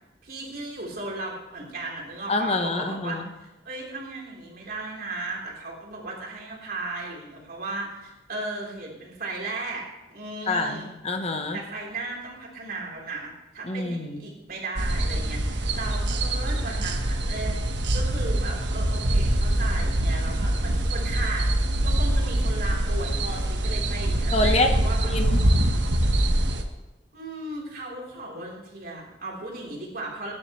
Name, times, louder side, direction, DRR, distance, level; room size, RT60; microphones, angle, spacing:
voice 1, 0.2-10.9 11.5-21.5 21.8-25.0 27.1-30.3, right 2 dB, 55° right, -2 dB, 3.9 m, -36 dB
voice 2, 2.3-3.2 10.5-11.6 13.6-14.2 24.3-24.7 25.0-25.4, left 2 dB, 35° left, 5 dB, 1.1 m, -26 dB
sound 1, 14.8-26.6, right 1 dB, 75° right, 1.3 m, -24 dB
21.5 x 11.0 x 3.2 m, 0.99 s
head